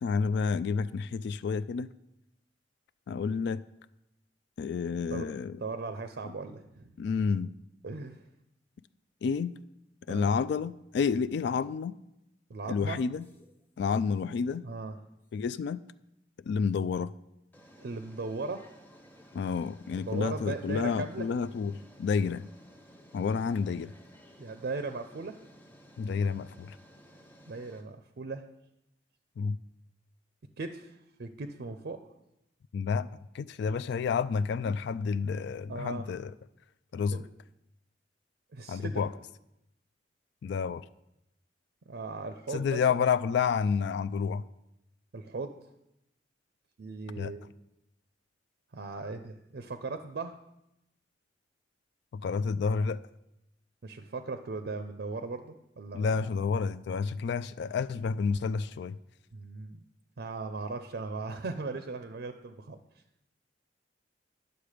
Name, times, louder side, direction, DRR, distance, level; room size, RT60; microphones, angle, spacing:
voice 1, 0.0-1.9 3.1-3.6 4.6-5.6 7.0-7.5 9.2-9.5 10.1-12.0 12.7-13.2 13.8-14.6 15.3-15.8 16.5-17.1 19.3-21.7 22.0-22.5 23.1-23.9 26.0-26.8 29.4-29.6 32.7-33.1 33.3-36.3 36.9-37.2 38.7-39.1 40.4-40.8 42.5-44.4 47.2-47.3 52.1-53.0 55.9-58.9, left 5 dB, 65° left, 15 dB, 0.3 m, -29 dB
voice 2, 5.6-6.9 7.8-8.2 10.1-10.3 12.5-13.0 14.6-15.0 17.8-18.7 20.0-21.3 24.4-25.4 27.5-28.4 30.6-32.0 35.7-36.1 37.1-37.2 38.5-39.0 41.9-42.8 45.1-45.6 46.8-47.5 48.7-50.4 53.8-56.3 59.3-59.8 60.2-62.8, right 3 dB, 60° right, 8 dB, 0.5 m, -38 dB
sound 1, 13.2-13.6 15.3-15.4 17.5-27.8, equal, 10° left, 0.9 m, -56 dB
9.9 x 6.8 x 5.0 m, 0.87 s
head